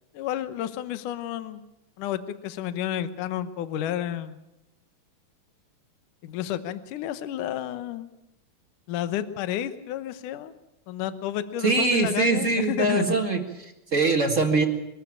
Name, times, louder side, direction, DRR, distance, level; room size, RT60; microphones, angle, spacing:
voice 1, 0.1-1.6 2.0-4.4 6.2-8.1 8.9-10.5 10.9-13.2, left 11 dB, 70° left, 12 dB, 2.3 m, -31 dB
voice 2, 11.6-14.6, right 3 dB, 35° right, 3 dB, 1.2 m, -23 dB
23.5 x 14.0 x 8.7 m, 0.92 s
omnidirectional pair, 4.3 m